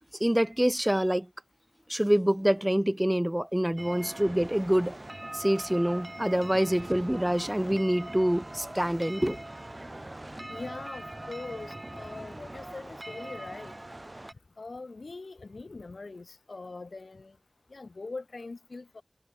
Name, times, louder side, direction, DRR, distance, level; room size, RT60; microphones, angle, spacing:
voice 1, 0.2-1.3 1.9-4.9 5.3-9.4, equal, 10° right, 0.5 m, -26 dB
sound 1, 3.8-14.3, right 1 dB, 35° right, 3.0 m, -42 dB
voice 2, 10.5-13.7 14.6-17.3 17.7-19.0, left 3 dB, 85° left, 0.5 m, -42 dB
wide cardioid pair, 45°, 0 cm